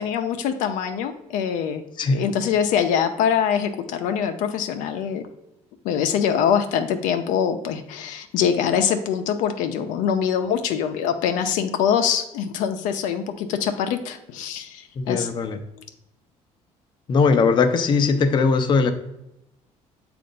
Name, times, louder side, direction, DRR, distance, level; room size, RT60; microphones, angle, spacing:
voice 1, 0.0-1.8 2.1-5.2 5.8-15.3, left 8 dB, 85° left, 7 dB, 0.6 m, -24 dB
voice 2, 15.0-15.6 17.1-18.9, left 4 dB, 35° left, 7 dB, 0.5 m, -19 dB
7.6 x 2.5 x 5.2 m, 0.85 s
cardioid pair, 125°, 13 cm